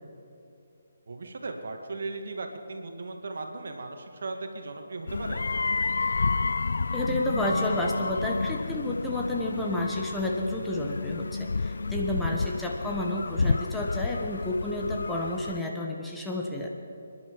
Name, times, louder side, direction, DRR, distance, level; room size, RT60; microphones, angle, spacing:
voice 1, 1.1-5.4 13.4-13.6, right 3 dB, 60° right, 4 dB, 2.0 m, -37 dB
sound 1, 5.1-15.6, left 4 dB, 65° left, 0.3 m, -30 dB
voice 2, 6.9-16.7, left 1 dB, 5° left, -2 dB, 1.4 m, -31 dB
27.0 x 11.0 x 4.8 m, 2.7 s
figure-of-eight pair, 145°, 0 cm